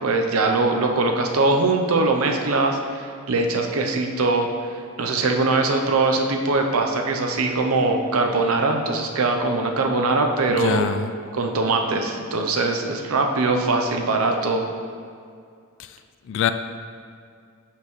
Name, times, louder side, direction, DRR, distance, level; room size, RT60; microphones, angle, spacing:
voice 1, 0.0-10.9 11.3-14.7, right 3 dB, 75° right, 3 dB, 0.6 m, -22 dB
voice 2, 10.6-11.1 15.8-16.0 16.2-16.5, left 8 dB, 60° left, 10 dB, 0.3 m, -24 dB
6.5 x 5.7 x 3.1 m, 2.3 s
head